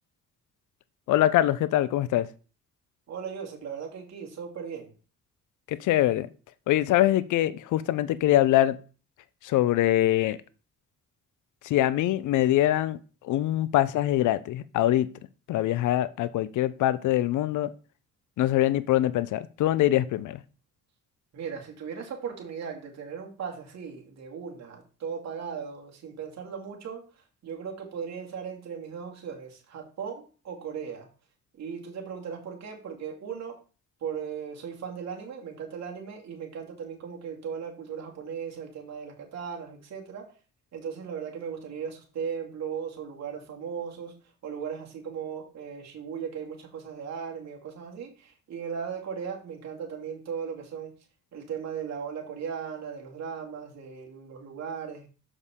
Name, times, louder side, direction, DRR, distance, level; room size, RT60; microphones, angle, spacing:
voice 1, 1.1-2.3 5.7-6.3 6.7-8.8 9.4-10.4 11.6-15.1 15.5-17.7 18.4-20.4, left 13 dB, 80° left, 0.6 m, -23 dB
voice 2, 3.1-4.9 21.3-27.0 27.4-31.1 31.6-33.6 34.0-40.2 40.7-44.1 44.4-50.9 51.3-55.1, right 7 dB, 60° right, 2.4 m, -37 dB
7.0 x 6.4 x 3.7 m
cardioid pair, 90°, 30 cm